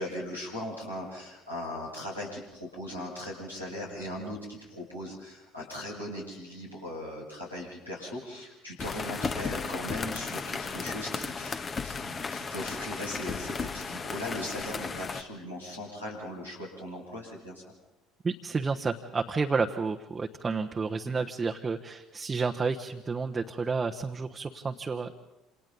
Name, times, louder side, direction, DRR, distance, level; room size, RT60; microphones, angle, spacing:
voice 1, 0.0-17.6, left 1 dB, 90° left, -6 dB, 6.6 m, -39 dB
sound 1, 8.8-15.2, left 5 dB, 30° left, 1.3 m, -35 dB
voice 2, 18.2-25.1, right 4 dB, 25° right, 3 dB, 1.2 m, -30 dB
28.5 x 27.5 x 4.1 m, 0.98 s
figure-of-eight pair, 60°, 0 cm